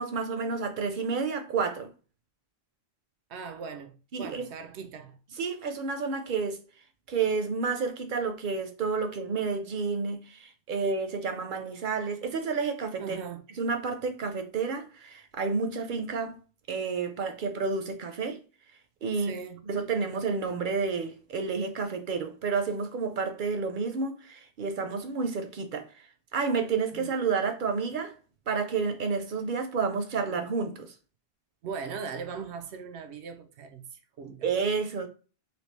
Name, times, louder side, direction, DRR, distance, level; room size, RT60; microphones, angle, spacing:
voice 1, 0.0-1.9 4.1-4.5 5.4-6.6 7.1-13.2 13.6-16.4 16.7-18.4 19.0-19.3 19.7-28.2 28.5-30.9 34.4-35.1, right 5 dB, 60° right, 0.6 m, -30 dB
voice 2, 3.3-5.2 13.0-13.4 19.2-19.6 26.9-27.1 31.6-34.5, right 6 dB, 90° right, 0.9 m, -39 dB
3.4 x 2.6 x 3.1 m
omnidirectional pair, 1.1 m